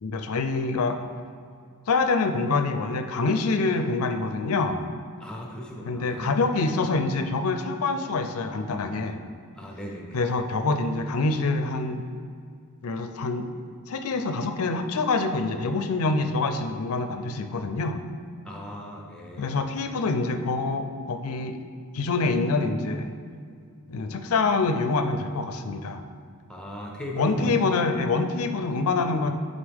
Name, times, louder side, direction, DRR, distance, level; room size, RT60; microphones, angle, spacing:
voice 1, 0.0-1.0 1.9-4.9 5.9-9.2 10.1-12.0 12.8-13.5 13.9-18.0 19.4-21.6 21.9-23.1 23.9-26.0 27.1-29.3, left 3 dB, 70° left, 8 dB, 0.5 m, -26 dB
voice 2, 5.2-6.6 9.6-10.3 18.4-19.6 26.5-27.6, equal, 5° left, -1 dB, 0.8 m, -37 dB
10.5 x 4.0 x 3.5 m, 2.2 s
head